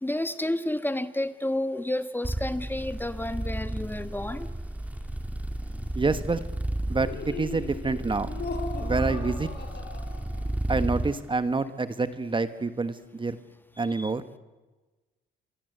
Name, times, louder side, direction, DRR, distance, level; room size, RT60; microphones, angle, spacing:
voice 1, 0.0-4.5 13.9-14.1, left 1 dB, 10° left, 10 dB, 1.3 m, -30 dB
sound 1, 2.2-11.1, right 1 dB, 5° right, 2.2 m, -33 dB
voice 2, 5.9-6.4 6.9-8.3 8.8-9.5 10.7-13.4 13.8-14.2, right 3 dB, 25° right, 11 dB, 1.4 m, -27 dB
Laughter, 6.9-10.6, left 4 dB, 55° left, 5.1 m, -38 dB
27.5 x 23.5 x 8.1 m, 1.2 s
cardioid pair, 90°, 20 cm